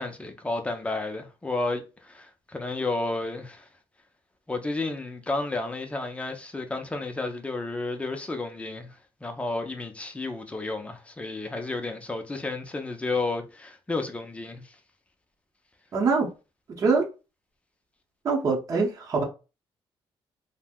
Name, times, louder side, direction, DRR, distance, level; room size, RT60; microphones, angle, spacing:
voice 1, 0.0-3.7 4.5-9.0 9.2-14.6, left 2 dB, 15° left, 0.5 m, -32 dB
voice 2, 15.9-16.3 16.8-17.0 18.2-19.2, right 4 dB, 35° right, 0.8 m, -23 dB
2.5 x 2.1 x 3.5 m
cardioid pair, 150°, 10 cm